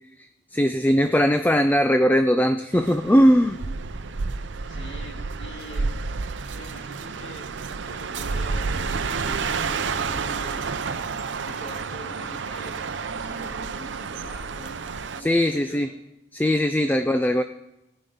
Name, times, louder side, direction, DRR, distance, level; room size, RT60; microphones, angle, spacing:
voice 1, 0.2-3.6 15.2-15.9 16.3-17.4, equal, 10° left, 9 dB, 0.3 m, -20 dB
sound 1, 2.7-15.2, right 4 dB, 90° right, 0.6 m, -30 dB
voice 2, 4.6-6.0 6.5-10.7 11.4-16.0 17.0-17.3, equal, 80° left, 2 dB, 2.1 m, -44 dB
15.0 x 8.9 x 5.5 m, 0.92 s
head